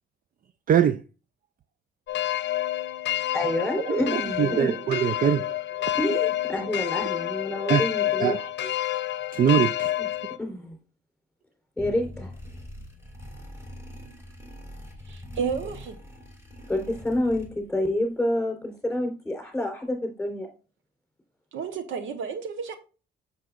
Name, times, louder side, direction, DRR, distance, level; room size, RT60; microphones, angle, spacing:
voice 1, 0.7-1.0 3.9-5.5 5.9-6.0 7.7-7.8 8.2-8.4 9.3-9.9, right 9 dB, 45° right, 0.4 m, -22 dB
sound 1, 2.1-10.4, left 14 dB, 60° left, 0.6 m, -28 dB
voice 2, 3.3-4.7 6.0-8.7 10.0-10.1 10.4-10.8 11.8-12.3 16.7-20.5, left 1 dB, 5° left, 3.8 m, -28 dB
sound 2, 11.8-17.8, left 1 dB, 15° right, 2.5 m, -43 dB
voice 3, 15.1-16.0 21.5-22.8, right 6 dB, 80° right, 1.0 m, -31 dB
7.8 x 6.8 x 2.4 m
cardioid pair, 90°, 20 cm